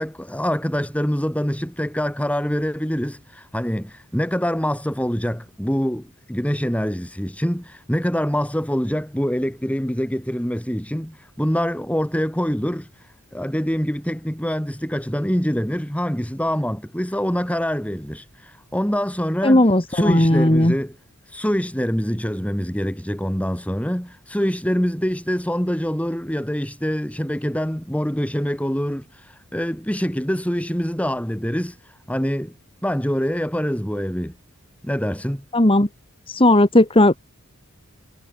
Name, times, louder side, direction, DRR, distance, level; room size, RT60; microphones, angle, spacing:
voice 1, 0.0-12.9 13.3-18.2 18.7-21.0 21.3-29.1 29.5-31.8 32.1-32.5 32.8-34.3 34.8-35.4, equal, 5° left, 3.9 m, -25 dB
voice 2, 19.4-20.8 35.5-35.9 36.3-37.2, left 1 dB, 25° left, 2.1 m, -16 dB
head